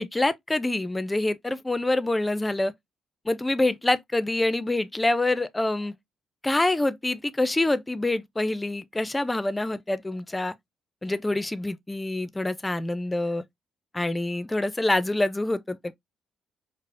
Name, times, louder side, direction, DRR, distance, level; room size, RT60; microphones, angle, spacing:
voice 1, 0.0-2.7 3.3-5.9 6.4-10.5 11.0-13.4 13.9-16.0, left 2 dB, 15° left, 0.4 m, -26 dB
4.8 x 2.0 x 2.4 m
cardioid pair, 90°, 0 cm